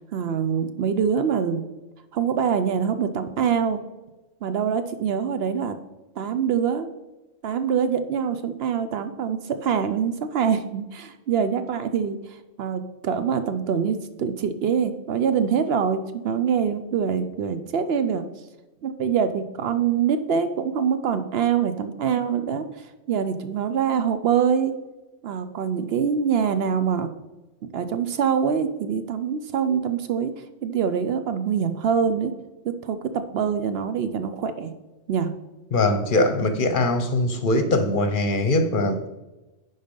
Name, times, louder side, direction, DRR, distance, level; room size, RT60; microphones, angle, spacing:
voice 1, 0.0-1.6 2.1-3.8 4.4-5.8 6.2-6.9 7.4-12.2 12.6-18.2 18.8-22.6 23.1-24.7 25.2-27.1 27.6-30.3 30.6-32.3 32.6-33.0 33.3-34.7 35.1-35.3, right 7 dB, 65° right, 10 dB, 0.8 m, -24 dB
voice 2, 35.7-39.0, left 2 dB, 50° left, 8 dB, 0.8 m, -21 dB
10.5 x 4.0 x 5.2 m, 1.1 s
omnidirectional pair, 1.2 m